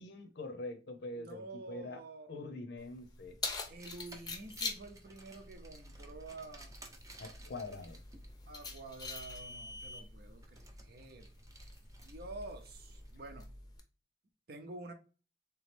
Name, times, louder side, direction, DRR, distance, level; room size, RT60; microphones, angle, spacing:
voice 1, 0.0-2.0 2.3-3.4 7.2-8.0, left 2 dB, 65° left, 0.6 m, -44 dB
voice 2, 1.1-2.4 3.7-6.8 8.5-11.3 12.0-13.5 14.5-14.9, right 2 dB, 60° right, 0.7 m, -49 dB
Keys jangling, 2.8-13.8, left 4 dB, 25° left, 0.6 m, -46 dB
Car, 3.6-13.1, equal, 20° right, 0.6 m, -53 dB
3.5 x 3.0 x 3.3 m
head